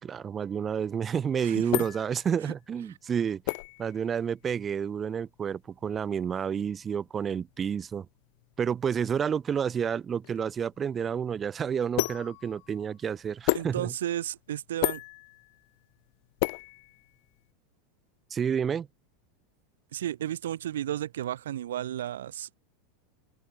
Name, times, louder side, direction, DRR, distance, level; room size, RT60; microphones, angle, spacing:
voice 1, 0.0-3.4 3.8-8.1 8.6-13.9 18.3-18.9, right 7 dB, 25° right, 0.8 m, -30 dB
sound 1, 1.1-17.5, left 31 dB, 60° left, 2.5 m, -36 dB
voice 2, 1.4-1.9 13.5-15.0 19.9-22.5, right 11 dB, 80° right, 0.6 m, -33 dB
open air
hypercardioid pair, 105°, 0 cm